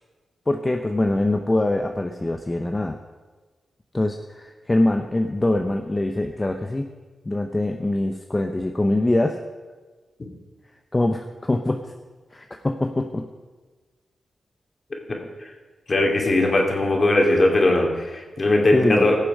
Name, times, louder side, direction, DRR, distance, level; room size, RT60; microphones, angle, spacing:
voice 1, 0.5-3.0 3.9-6.9 7.2-9.4 10.9-11.9 12.3-13.2 18.7-19.1, left 2 dB, 30° left, 5 dB, 0.8 m, -23 dB
voice 2, 15.9-19.2, left 2 dB, 50° left, 1 dB, 2.8 m, -19 dB
17.0 x 6.9 x 4.9 m, 1.3 s
cardioid pair, 45°, 0 cm